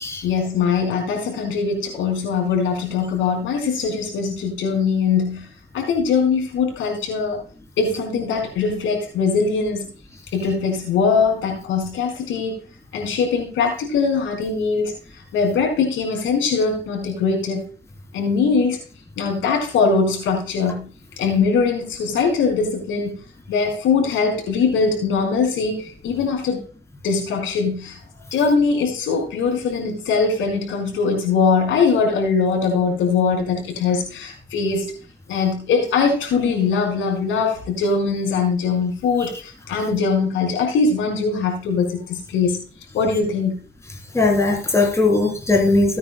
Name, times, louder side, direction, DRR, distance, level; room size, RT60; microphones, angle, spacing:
voice 1, 0.2-5.5 5.7-7.4 7.8-9.9 10.3-12.6 12.9-14.9 15.3-17.6 18.1-18.8 19.2-20.9 21.2-23.2 23.5-26.6 27.0-28.0 28.3-34.9 35.3-42.6 42.9-43.6, left 5 dB, 85° left, 1 dB, 4.7 m, -21 dB
voice 2, 44.1-46.0, left 2 dB, 15° left, 1 dB, 3.5 m, -18 dB
17.5 x 9.5 x 2.2 m, 0.37 s
cardioid pair, 90°, 20 cm